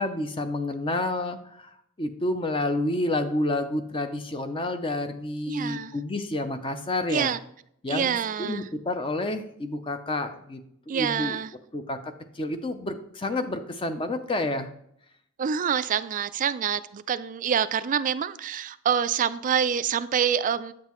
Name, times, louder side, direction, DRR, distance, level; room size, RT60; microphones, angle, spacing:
voice 1, 0.0-1.7 2.0-7.3 7.8-10.6 10.9-11.4 11.7-14.7, left 2 dB, 25° left, 8 dB, 0.5 m, -29 dB
voice 2, 5.5-5.9 7.1-7.4 7.9-8.7 10.9-11.5 15.4-20.7, right 7 dB, 35° right, 14 dB, 0.3 m, -26 dB
8.2 x 7.4 x 3.0 m, 0.70 s
head